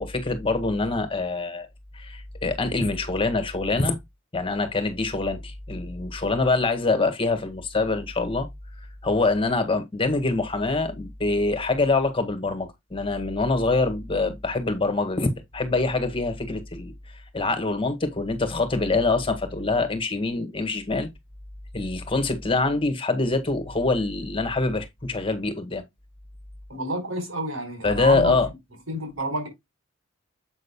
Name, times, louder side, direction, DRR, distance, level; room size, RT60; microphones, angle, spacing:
voice 1, 0.0-1.7 1.9-4.0 4.3-8.5 9.0-16.9 17.3-21.1 21.7-25.8 27.8-28.5, left 3 dB, 25° left, 1.6 m, -25 dB
voice 2, 26.7-28.3 28.9-29.5, right 1 dB, 80° right, 4.4 m, -29 dB
7.8 x 6.5 x 2.2 m
head